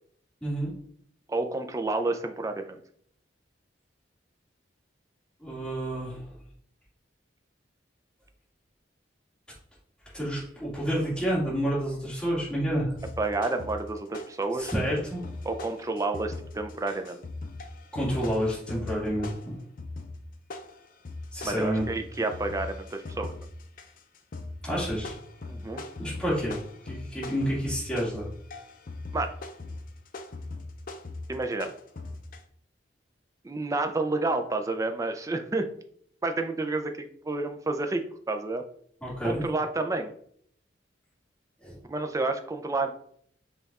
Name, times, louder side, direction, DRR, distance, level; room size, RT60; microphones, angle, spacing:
voice 1, 1.3-2.8 13.2-14.7 15.4-17.2 21.4-23.3 25.5-25.8 29.1-29.3 31.3-31.7 33.4-35.7 36.2-38.6 39.2-40.1 41.9-42.9, right 2 dB, 15° right, 6 dB, 0.4 m, -30 dB
voice 2, 5.4-6.3 10.1-13.0 14.6-15.3 17.9-19.6 21.3-21.9 24.6-25.2 26.0-26.6 26.9-28.3 39.0-39.5 41.6-41.8, equal, 5° left, -8 dB, 2.1 m, -29 dB
sound 1, 13.0-14.4 14.7-32.4, left 2 dB, 50° left, 0.5 m, -40 dB
5.5 x 2.4 x 4.1 m, 0.63 s
head